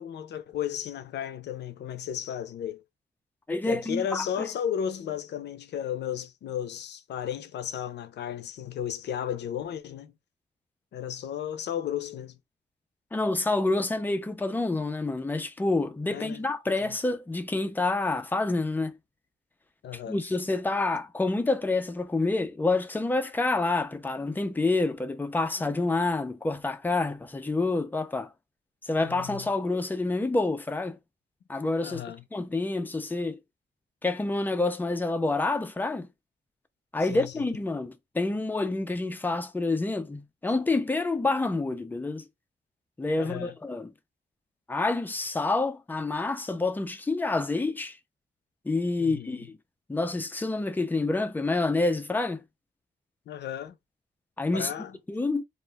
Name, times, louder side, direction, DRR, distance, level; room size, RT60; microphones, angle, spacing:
voice 1, 0.0-2.8 3.7-10.1 10.9-12.4 16.1-16.4 16.8-16.9 19.8-20.2 29.0-29.5 31.8-32.2 37.0-37.3 43.2-43.5 49.0-49.4 53.3-53.7 54.5-55.0, left 9 dB, 75° left, 0.4 m, -34 dB
voice 2, 3.5-4.5 13.1-19.0 20.1-28.3 28.8-31.0 31.5-32.0 32.3-33.4 34.0-36.1 36.9-42.2 43.0-43.9 44.7-48.0 48.7-49.5 49.9-52.4 54.4-54.7 55.1-55.4, left 2 dB, 10° left, 0.3 m, -28 dB
2.4 x 2.1 x 3.2 m
wide cardioid pair, 170°, 18 cm